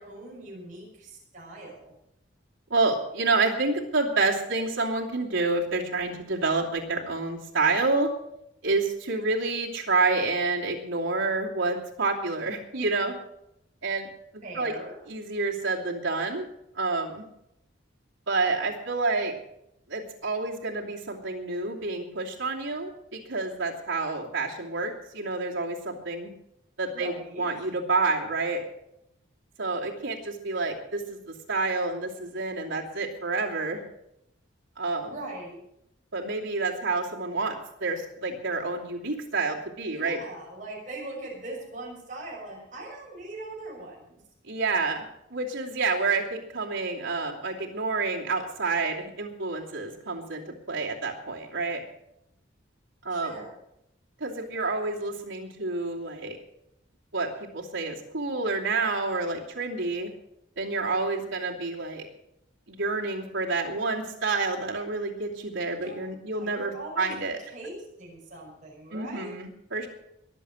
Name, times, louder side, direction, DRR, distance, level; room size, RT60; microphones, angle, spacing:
voice 1, 0.0-1.9 14.4-14.9 26.9-27.4 35.0-35.6 39.9-44.2 53.1-53.6 65.7-66.0 66.3-67.1 67.5-69.4, right 2 dB, 40° right, -2 dB, 6.3 m, -41 dB
voice 2, 2.7-8.1 8.6-13.1 13.8-14.7 15.1-16.4 16.7-17.3 18.3-19.3 19.9-26.3 26.8-28.6 29.6-33.8 34.8-35.2 36.1-40.2 44.5-51.8 53.0-53.4 54.2-56.4 57.1-60.1 60.6-62.0 62.7-67.4 68.9-69.9, right 3 dB, 90° right, -4 dB, 2.8 m, -29 dB
22.5 x 7.5 x 6.4 m, 0.80 s
head